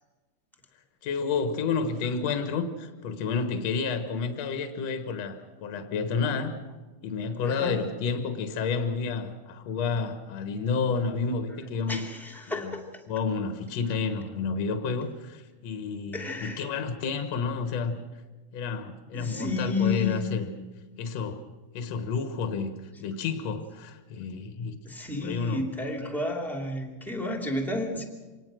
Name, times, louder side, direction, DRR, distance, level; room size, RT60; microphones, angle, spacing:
voice 1, 1.0-6.6 7.0-12.0 12.5-12.8 13.1-18.0 18.5-20.5 21.0-21.5 21.7-22.7 23.0-24.8 25.2-25.6, left 5 dB, 65° left, 8 dB, 2.5 m, -30 dB
voice 2, 7.5-7.8 11.9-12.8 16.1-16.6 19.1-20.3 24.8-28.1, left 3 dB, ahead, 3 dB, 2.4 m, -31 dB
25.5 x 19.0 x 6.3 m, 1.2 s
omnidirectional pair, 3.4 m